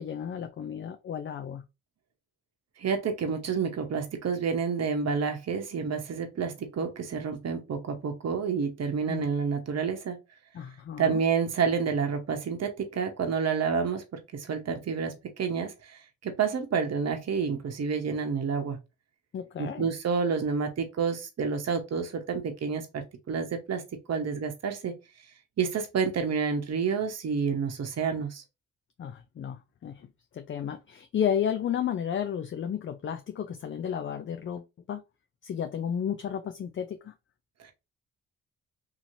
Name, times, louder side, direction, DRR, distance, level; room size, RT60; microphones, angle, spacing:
voice 1, 0.0-1.6 9.1-9.3 10.5-11.2 19.3-19.9 29.0-30.1 30.3-35.0 35.4-37.1, left 8 dB, 35° left, 0.4 m, -32 dB
voice 2, 2.8-10.2 11.0-18.8 19.6-23.8 24.1-24.9 25.6-28.4 37.6-37.7, right 6 dB, 50° right, 0.9 m, -29 dB
2.9 x 2.8 x 2.6 m
supercardioid pair, 55°, 34 cm